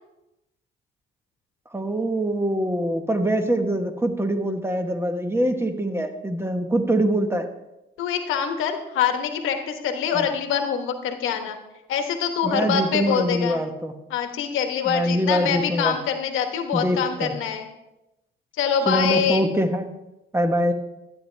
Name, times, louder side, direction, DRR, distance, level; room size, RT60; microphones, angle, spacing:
voice 1, 1.7-7.5 10.1-10.3 12.4-13.9 14.8-16.0 16.7-17.3 18.9-19.9 20.3-20.7, right 1 dB, 10° right, 6 dB, 1.1 m, -24 dB
voice 2, 8.0-11.6 11.9-13.6 14.1-17.7 18.6-19.4, left 7 dB, 90° left, 6 dB, 1.2 m, -24 dB
13.0 x 9.1 x 3.3 m, 0.95 s
cardioid pair, 90°, 20 cm